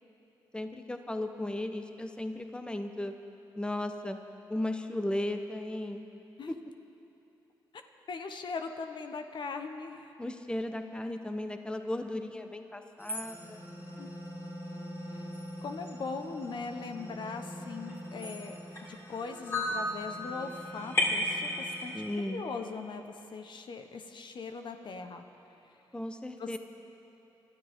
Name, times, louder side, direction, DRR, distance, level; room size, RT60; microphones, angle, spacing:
voice 1, 0.5-3.1 3.6-4.2 4.5-6.1 6.5-6.6 10.2-13.7 21.9-22.5 25.9-26.6, left 1 dB, 10° left, 7 dB, 0.9 m, -35 dB
voice 2, 8.1-10.1 14.0-14.1 15.1-15.3 15.6-18.5 18.9-21.9 22.3-25.2 26.4-26.6, left 4 dB, 60° left, 6 dB, 1.1 m, -40 dB
sound 1, 13.0-22.1, left 1 dB, 30° left, 3.6 m, -37 dB
24.5 x 13.0 x 3.7 m, 2.9 s
supercardioid pair, 60°, 9 cm